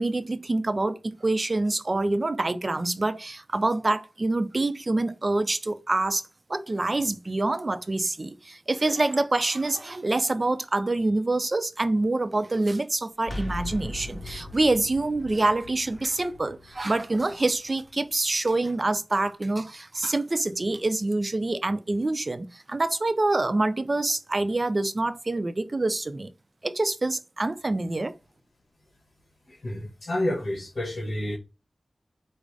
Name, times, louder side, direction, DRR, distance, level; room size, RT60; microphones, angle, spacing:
voice 1, 0.0-6.2 6.5-26.3 26.6-28.1, right 2 dB, 40° right, 0.5 m, -26 dB
sound 1, 13.2-18.9, left 2 dB, 30° left, 1.3 m, -40 dB
voice 2, 29.5-31.4, left 1 dB, 70° left, 1.4 m, -29 dB
5.2 x 2.1 x 4.8 m
wide cardioid pair, 75°, 0 cm